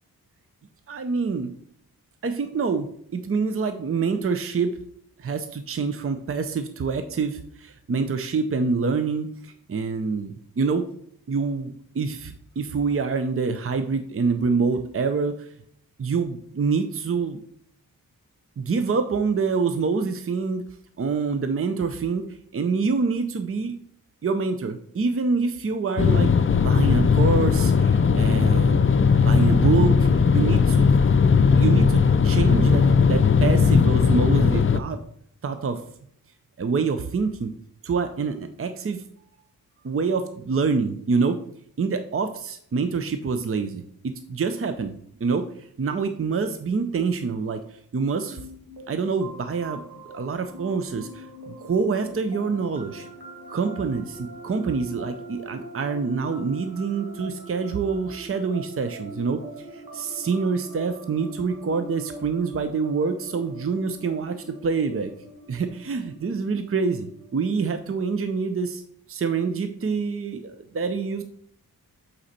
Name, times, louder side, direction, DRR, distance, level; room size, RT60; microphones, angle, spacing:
voice 1, 0.9-1.5 2.2-2.9 3.1-4.7 5.2-10.8 11.3-15.5 16.0-17.4 18.6-20.6 21.0-22.2 22.5-23.8 24.2-28.8 29.2-30.9 31.5-35.0 35.4-35.8 36.6-37.5 37.8-39.0 39.8-41.4 41.8-48.5 48.9-49.8 50.1-53.1 53.5-59.4 59.7-65.1 65.5-68.8 69.1-71.2, right 5 dB, 40° right, 8 dB, 0.7 m, -26 dB
sound 1, 26.0-34.8, left 5 dB, 35° left, 0.5 m, -18 dB
sound 2, 48.3-67.8, right 1 dB, 75° right, 1.7 m, -43 dB
7.8 x 4.3 x 4.3 m, 0.63 s
cardioid pair, 65°, 36 cm